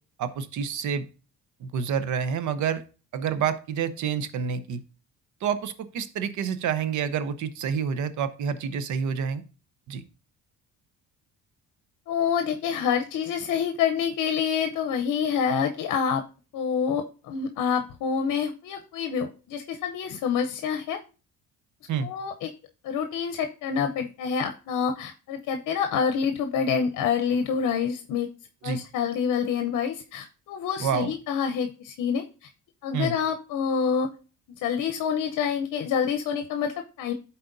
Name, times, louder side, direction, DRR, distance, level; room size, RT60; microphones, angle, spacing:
voice 1, 0.2-1.1 1.6-2.8 3.1-4.8 5.4-9.4 9.9-10.0 21.9-22.1 28.6-28.8 30.8-31.1 32.9-33.1, right 7 dB, 65° right, 12 dB, 0.8 m, -28 dB
voice 2, 12.1-16.2 16.5-21.0 22.0-22.5 22.8-28.3 28.6-32.2 32.8-34.1 34.6-37.1, left 7 dB, 65° left, 6 dB, 0.7 m, -27 dB
11.5 x 4.2 x 2.6 m, 0.35 s
cardioid pair, 100°, 32 cm